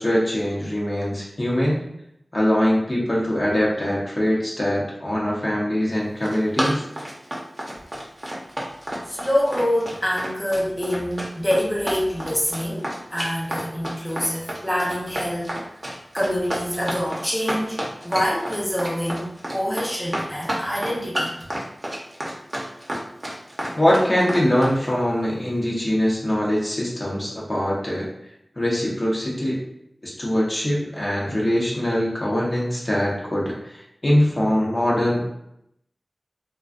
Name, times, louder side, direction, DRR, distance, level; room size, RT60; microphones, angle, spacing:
voice 1, 0.0-1.8 2.3-6.8 23.7-28.1 28.6-29.6 30.0-35.3, equal, 40° left, -5 dB, 0.8 m, -22 dB
Run, 6.0-24.8, right 1 dB, 45° right, 0.7 m, -30 dB
voice 2, 9.1-15.6 16.1-21.3, equal, 5° left, -6 dB, 0.8 m, -26 dB
2.4 x 2.2 x 2.4 m, 0.77 s
wide cardioid pair, 40°, 0 cm